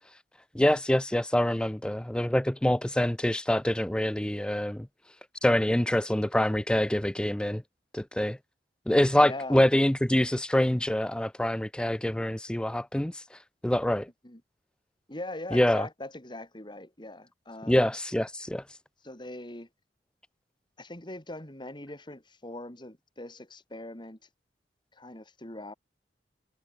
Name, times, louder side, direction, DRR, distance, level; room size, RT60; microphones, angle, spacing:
voice 1, 0.5-5.2 5.4-7.6 7.9-8.4 8.9-14.1 15.5-15.9 17.7-18.8, left 1 dB, 5° left, 0.4 m, -26 dB
voice 2, 9.2-9.6 14.2-14.4 15.1-17.9 19.0-19.7 20.8-24.2 24.9-25.7, left 1 dB, 25° left, 3.6 m, -41 dB
head